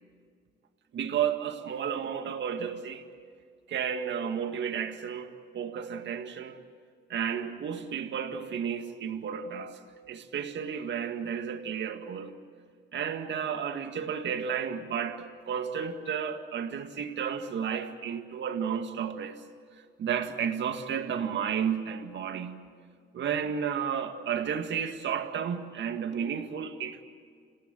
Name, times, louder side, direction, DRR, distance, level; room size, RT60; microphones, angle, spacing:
voice 1, 0.9-3.0 3.7-6.6 7.1-9.8 10.1-12.3 12.9-19.4 20.0-22.6 23.1-27.0, right 7 dB, 65° right, 6 dB, 2.0 m, -32 dB
27.0 x 17.0 x 9.0 m, 2.1 s
cardioid pair, 90°, 20 cm